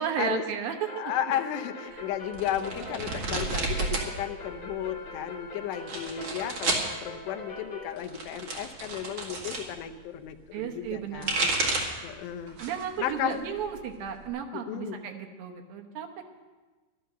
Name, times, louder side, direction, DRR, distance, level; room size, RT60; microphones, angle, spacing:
voice 1, 0.0-0.9 1.9-2.0 2.8-3.2 10.5-11.5 12.6-16.2, right 8 dB, 70° right, 4 dB, 2.4 m, -34 dB
voice 2, 0.9-11.5 12.0-12.6 13.0-13.4 14.5-15.0, left 10 dB, 80° left, 8 dB, 2.9 m, -34 dB
sound 1, 0.9-7.9, left 2 dB, 60° left, 1.7 m, -42 dB
sound 2, 2.3-4.1 4.4-5.1 5.7-6.9 7.9-9.7 10.9-12.0 12.5-12.9 13.3-14.3, right 3 dB, 45° right, 1.7 m, -31 dB
12.0 x 12.0 x 6.7 m, 1.3 s
omnidirectional pair, 5.0 m